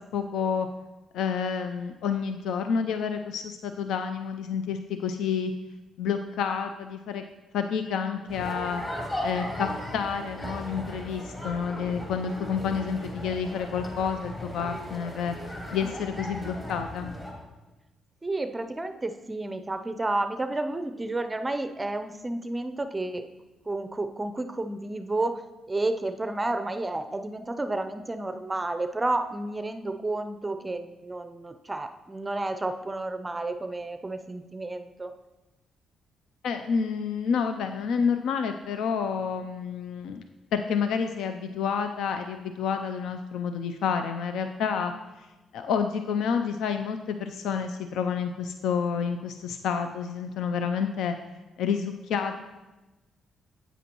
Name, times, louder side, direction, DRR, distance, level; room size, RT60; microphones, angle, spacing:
voice 1, 0.1-0.7 1.1-5.5 6.0-7.2 7.5-8.8 9.2-15.3 15.7-17.2 36.4-40.2 40.5-44.9 45.2-45.3 45.5-51.1 51.6-52.4, left 6 dB, 80° left, 7 dB, 0.4 m, -29 dB
sound 1, 8.3-17.3, left 1 dB, 25° left, 2.8 m, -37 dB
voice 2, 18.2-23.2 23.7-25.4 25.7-35.1, right 2 dB, 20° right, 8 dB, 0.5 m, -31 dB
9.1 x 8.2 x 3.0 m, 1.1 s
cardioid pair, 90°, 0 cm